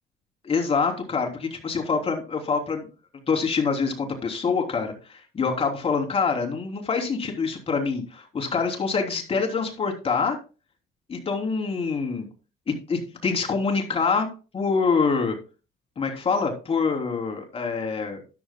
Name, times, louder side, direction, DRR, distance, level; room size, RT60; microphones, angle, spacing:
voice 1, 0.4-2.9 3.3-10.4 11.1-12.3 12.7-14.3 14.5-15.4 16.0-18.2, left 5 dB, 35° left, 3 dB, 3.1 m, -25 dB
13.5 x 10.5 x 2.2 m, 0.31 s
cardioid pair, 110°, 17 cm